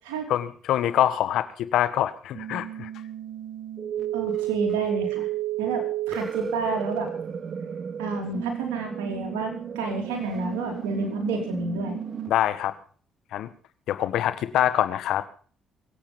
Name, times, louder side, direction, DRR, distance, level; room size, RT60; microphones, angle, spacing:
voice 1, 0.3-2.9 12.3-12.8 13.3-13.5 13.9-15.2, left 11 dB, 75° left, 13 dB, 1.4 m, -25 dB
sound 1, 2.3-12.3, right 10 dB, 55° right, 1.7 m, -32 dB
voice 2, 4.1-5.3 5.6-7.1 8.0-12.0, right 3 dB, 85° right, 0 dB, 3.3 m, -30 dB
23.0 x 8.7 x 5.3 m, 0.42 s
supercardioid pair, 60°, 0 cm